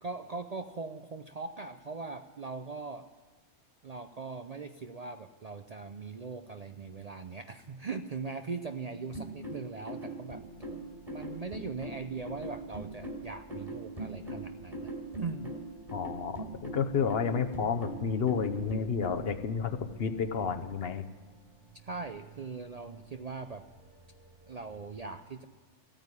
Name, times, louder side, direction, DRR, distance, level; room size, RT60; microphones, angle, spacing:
voice 1, 0.0-3.1 3.8-10.4 11.1-14.9 15.2-15.5 21.8-23.6 24.5-25.4, right 4 dB, 45° right, 8 dB, 0.5 m, -40 dB
sound 1, 9.1-19.1, right 2 dB, 30° right, 3.0 m, -40 dB
sound 2, 10.3-24.9, right 3 dB, 65° right, 3.0 m, -57 dB
voice 2, 15.9-21.0, left 6 dB, 60° left, 9 dB, 1.0 m, -31 dB
15.0 x 9.0 x 9.7 m, 1.4 s
omnidirectional pair, 1.2 m